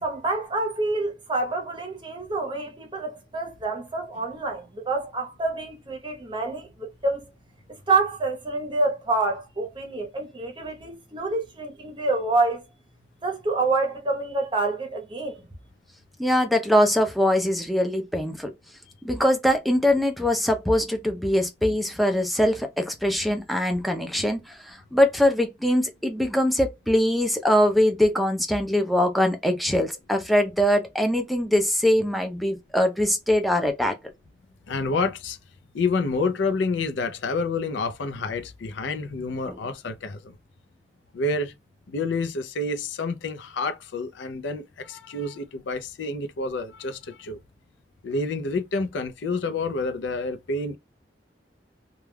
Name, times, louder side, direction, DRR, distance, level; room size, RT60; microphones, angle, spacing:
voice 1, 0.0-7.2 7.7-12.6 13.2-15.5, right 3 dB, 25° right, 0.7 m, -27 dB
voice 2, 16.2-18.5 19.0-33.9 39.5-39.6, left 1 dB, ahead, 0.4 m, -22 dB
voice 3, 34.7-35.4 35.7-40.4 41.1-41.5 41.9-47.4 48.0-50.8, left 3 dB, 85° left, 0.5 m, -28 dB
2.3 x 2.2 x 3.2 m
head